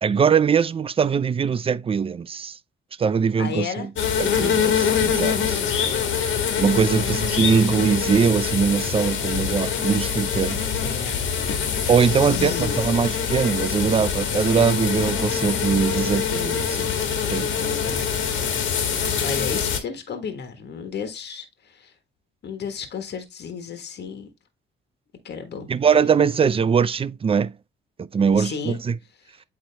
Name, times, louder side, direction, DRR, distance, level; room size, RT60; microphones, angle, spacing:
voice 1, 0.0-2.6 3.0-3.9 4.2-5.6 6.6-10.6 11.9-16.9 17.3-17.5 25.7-27.5 28.0-29.0, right 6 dB, 30° right, 0.4 m, -21 dB
voice 2, 3.4-3.9 5.6-6.2 6.9-7.2 10.8-11.4 12.3-12.9 17.3-18.1 19.2-21.9 22.4-24.3 25.2-25.7 28.3-28.8, left 6 dB, 60° left, 1.5 m, -33 dB
sound 1, 4.0-19.8, left 7 dB, 75° left, 1.6 m, -24 dB
8.7 x 3.2 x 3.4 m
cardioid pair, 90°, 20 cm